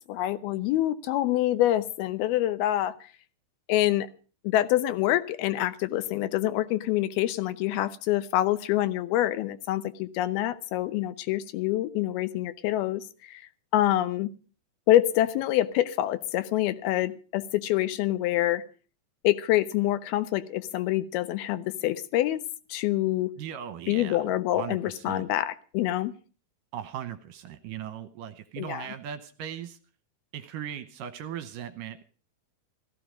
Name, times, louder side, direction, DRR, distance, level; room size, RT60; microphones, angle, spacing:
voice 1, 0.0-3.0 3.7-4.1 4.4-13.4 13.7-14.3 14.9-18.6 19.2-22.4 22.7-23.3 23.9-26.2 28.6-28.9, left 14 dB, 80° left, 13 dB, 2.7 m, -26 dB
voice 2, 23.4-24.2 24.5-25.3 26.7-29.8 30.3-32.0, right 10 dB, 70° right, 11 dB, 2.3 m, -38 dB
15.5 x 15.0 x 5.1 m, 0.37 s
omnidirectional pair, 4.4 m